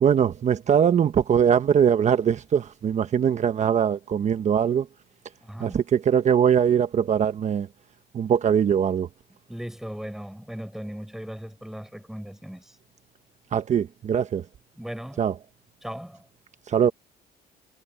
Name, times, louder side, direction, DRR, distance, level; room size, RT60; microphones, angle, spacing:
voice 1, 0.0-4.9 5.6-7.7 8.1-9.1 13.5-14.4 15.2-15.3 16.7-16.9, right 8 dB, 45° right, 1.2 m, -21 dB
voice 2, 5.4-5.8 9.5-12.8 14.8-15.3 15.8-16.3, equal, ahead, 6.8 m, -37 dB
cardioid pair, 110°, 17 cm